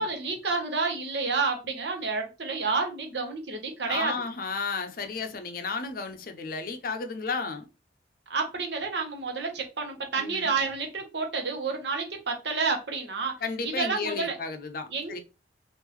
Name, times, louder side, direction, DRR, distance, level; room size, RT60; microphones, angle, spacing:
voice 1, 0.0-4.1 8.3-13.4 13.6-14.4 14.9-15.2, right 4 dB, 70° right, 1.0 m, -29 dB
voice 2, 3.9-7.7 10.2-10.5 13.4-15.2, left 4 dB, 50° left, 0.5 m, -33 dB
3.5 x 2.5 x 3.0 m
head